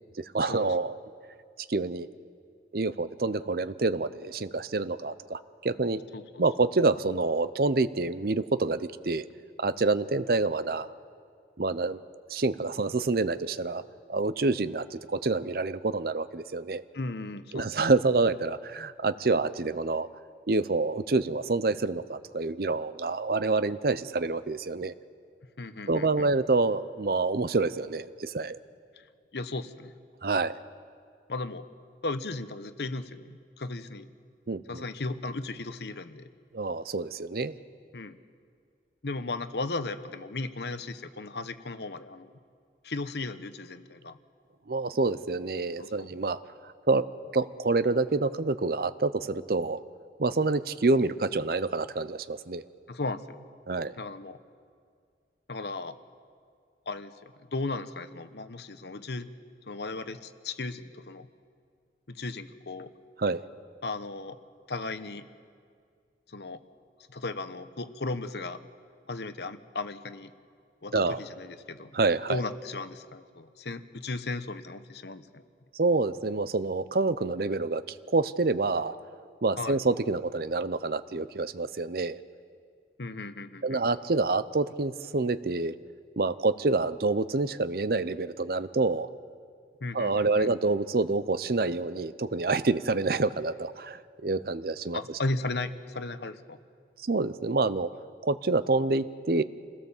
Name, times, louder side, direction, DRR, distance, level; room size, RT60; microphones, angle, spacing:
voice 1, 0.2-1.0 1.7-2.1 2.7-6.0 6.4-9.2 9.6-10.9 11.6-12.0 12.3-13.8 14.1-16.8 17.5-20.1 20.5-24.9 25.9-28.6 30.2-30.6 34.5-34.8 36.5-37.5 44.7-46.4 46.9-47.1 47.3-49.8 50.2-52.6 53.7-54.0 63.2-63.4 70.9-71.2 71.9-72.4 75.7-77.8 78.1-79.0 79.4-82.2 83.6-85.7 86.2-89.1 89.9-95.0 97.0-97.9 98.2-99.4, right 3 dB, 55° right, 14 dB, 0.6 m, -27 dB
voice 2, 16.9-17.8 25.6-26.3 29.0-29.1 29.3-29.9 31.3-31.6 32.0-34.1 34.7-36.3 37.9-38.2 39.0-42.3 42.8-44.2 45.8-46.1 52.9-53.4 54.0-54.4 55.5-56.0 56.9-59.3 59.7-61.3 62.1-62.9 63.8-64.4 64.7-65.2 66.3-66.6 67.1-68.6 69.1-70.3 70.8-71.9 72.3-75.4 79.6-79.8 83.0-83.8 89.8-90.5 94.9-96.6, left 3 dB, 70° left, 11 dB, 1.0 m, -36 dB
26.5 x 17.0 x 7.3 m, 2.2 s
head